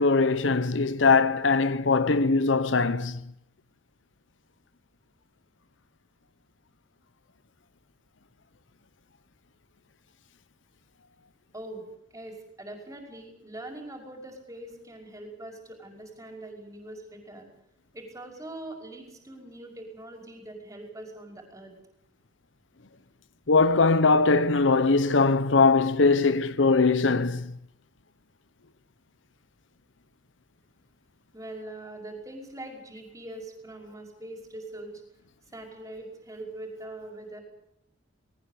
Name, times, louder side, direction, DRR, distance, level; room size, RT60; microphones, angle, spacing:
voice 1, 0.0-3.2 23.5-27.5, left 4 dB, 85° left, 1.0 m, -21 dB
voice 2, 12.1-17.5 17.9-21.7 31.3-35.0 35.5-37.4, right 1 dB, 20° right, 5.5 m, -42 dB
20.0 x 19.0 x 8.5 m
head